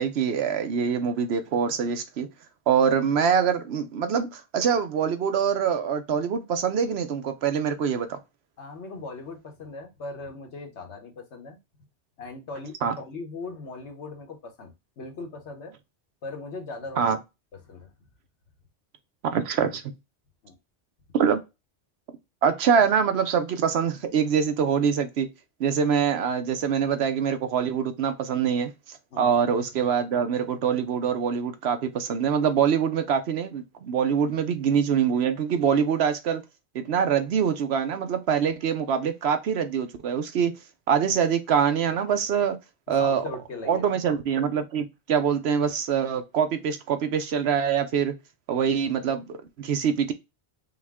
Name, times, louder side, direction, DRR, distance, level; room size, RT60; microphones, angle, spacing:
voice 1, 0.0-2.3 2.7-8.2 12.8-12.9 17.0-17.2 19.3-19.8 21.1-21.4 22.4-25.3 25.6-28.7 29.2-36.4 36.7-40.5 40.9-42.6 42.9-43.2 43.7-48.1 48.5-50.1, right 7 dB, 70° right, 0.9 m, -24 dB
voice 2, 8.6-11.6 12.2-15.7 16.2-17.2 17.6-17.9 20.4-20.6 29.1-29.3 34.3-34.4 43.0-43.9, left 3 dB, 75° left, 1.4 m, -39 dB
5.5 x 2.2 x 3.5 m
omnidirectional pair, 1.2 m